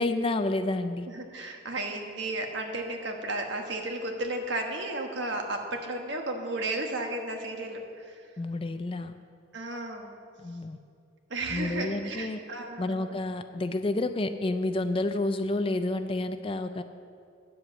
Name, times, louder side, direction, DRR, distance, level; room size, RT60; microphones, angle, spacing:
voice 1, 0.0-1.1 8.4-9.2 10.4-10.8 11.5-12.4 12.8-16.8, left 2 dB, 25° left, 9 dB, 0.4 m, -29 dB
voice 2, 1.1-8.2 9.5-10.2 11.3-13.2, right 2 dB, 60° right, 3 dB, 1.3 m, -34 dB
9.6 x 7.8 x 7.5 m, 2.4 s
head